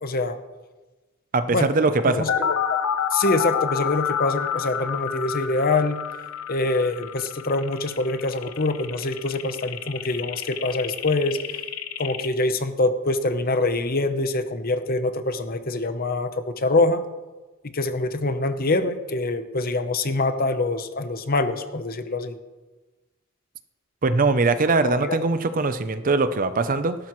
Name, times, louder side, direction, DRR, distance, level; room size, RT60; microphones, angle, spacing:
voice 1, 0.0-0.4 1.5-1.7 2.0-2.5 3.1-6.0 6.5-11.6 12.0-17.0 17.7-22.4 24.8-25.2, left 2 dB, 45° left, 9 dB, 0.8 m, -24 dB
voice 2, 1.3-2.3 24.0-27.0, right 3 dB, 40° right, 11 dB, 0.6 m, -21 dB
sound 1, 2.3-12.3, left 8 dB, 80° left, 0.8 m, -29 dB
18.5 x 11.5 x 3.1 m, 1.2 s
head